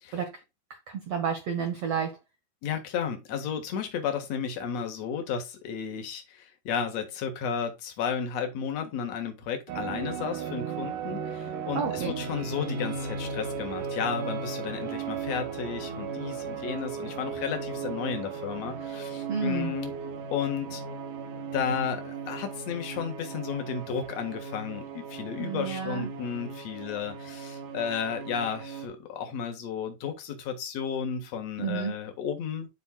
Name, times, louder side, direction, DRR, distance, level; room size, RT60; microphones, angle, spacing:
voice 1, 0.9-2.2 11.7-12.1 19.3-19.7 25.4-26.1 31.6-32.0, right 6 dB, 90° right, 1.4 m, -30 dB
voice 2, 2.6-19.9 20.3-20.8 21.5-32.7, left 7 dB, 55° left, 2.1 m, -33 dB
sound 1, 9.7-28.9, right 5 dB, 70° right, 2.1 m, -36 dB
12.5 x 4.5 x 2.2 m
omnidirectional pair, 4.6 m